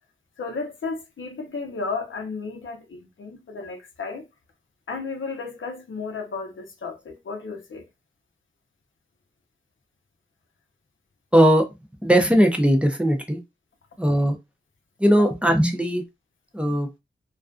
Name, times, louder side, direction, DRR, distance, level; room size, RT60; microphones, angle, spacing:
voice 1, 0.4-4.3 4.9-7.8 15.2-15.3 16.6-16.8, left 4 dB, 85° left, 0.6 m, -33 dB
voice 2, 11.3-11.7 12.0-13.4 14.0-14.4 15.0-16.0 16.5-16.9, equal, 5° right, 0.5 m, -19 dB
2.4 x 2.2 x 2.4 m
wide cardioid pair, 75°, 20 cm